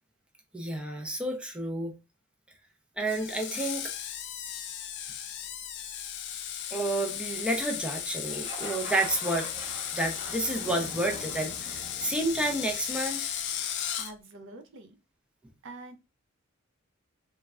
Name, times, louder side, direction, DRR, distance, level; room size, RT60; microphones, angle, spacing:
voice 1, 0.5-1.9 3.0-3.9 6.7-9.5 9.9-13.3, right 1 dB, 5° right, 0.4 m, -30 dB
Screech, 3.1-14.1, left 9 dB, 55° left, 0.4 m, -36 dB
sound 1, 8.4-13.7, right 1 dB, 35° right, 0.9 m, -44 dB
voice 2, 14.0-15.0 15.6-16.0, right 2 dB, 65° right, 0.5 m, -45 dB
3.1 x 2.2 x 2.3 m
head